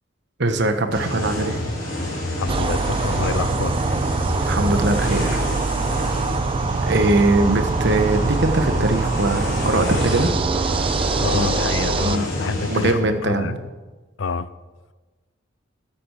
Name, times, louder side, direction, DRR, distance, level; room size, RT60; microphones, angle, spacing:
voice 1, 0.4-1.6 4.5-5.5 6.8-10.3 11.3-11.5 12.0-12.4 12.7-13.6, right 2 dB, 60° right, 7 dB, 1.3 m, -21 dB
sound 1, 0.9-12.9, left 1 dB, 45° left, 4.1 m, -28 dB
voice 2, 2.4-3.8 11.2-13.6 14.2-14.5, left 4 dB, 70° left, 15 dB, 0.6 m, -27 dB
sound 2, 2.5-12.2, right 4 dB, 25° right, 0.4 m, -24 dB
14.0 x 8.7 x 6.7 m, 1.3 s
head